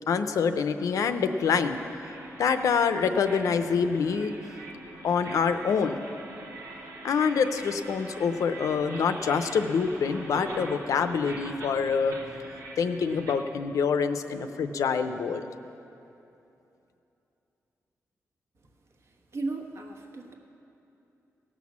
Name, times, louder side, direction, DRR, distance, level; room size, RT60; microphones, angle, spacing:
voice 1, 0.1-1.8 2.4-4.3 5.0-6.0 7.0-12.1 12.8-15.4, left 6 dB, 75° left, 9 dB, 0.6 m, -26 dB
sound 1, 1.4-13.3, right 2 dB, 90° right, 1.3 m, -43 dB
voice 2, 18.9-20.3, right 3 dB, 50° right, 2 dB, 1.2 m, -36 dB
17.5 x 6.2 x 7.3 m, 2.9 s
wide cardioid pair, 155°, 6 cm